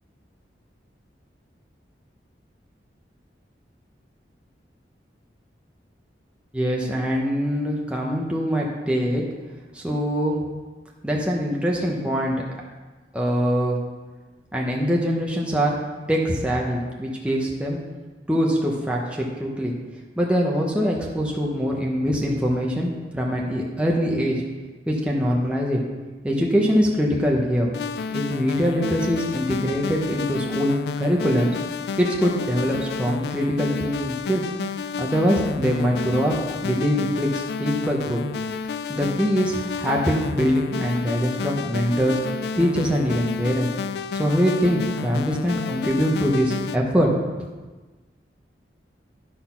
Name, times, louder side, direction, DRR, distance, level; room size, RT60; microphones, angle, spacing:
voice 1, 6.5-9.2 9.7-10.4 11.0-12.4 13.1-13.8 14.5-15.8 16.1-17.8 18.3-19.7 20.2-24.4 24.9-25.8 26.2-27.7 28.1-31.5 32.0-34.4 35.0-36.3 36.6-38.2 38.9-42.2 42.6-43.7 44.1-47.1, equal, 5° right, -2 dB, 0.9 m, -23 dB
sound 1, 27.7-46.8, left 5 dB, 65° left, 0.3 m, -30 dB
11.0 x 4.1 x 5.7 m, 1.3 s
head